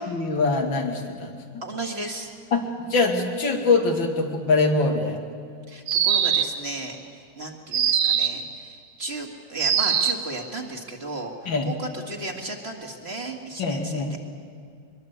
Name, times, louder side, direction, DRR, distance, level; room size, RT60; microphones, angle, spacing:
voice 1, 0.0-1.3 2.5-5.2 11.5-11.7 13.6-14.1, left 3 dB, 90° left, 3 dB, 3.0 m, -23 dB
voice 2, 1.6-2.3 5.7-14.0, right 2 dB, 35° right, 2 dB, 2.3 m, -35 dB
sound 1, 5.9-6.7 7.7-8.5 9.6-10.3, right 8 dB, 65° right, 1.6 m, -22 dB
23.5 x 22.0 x 8.1 m, 2.2 s
omnidirectional pair, 2.0 m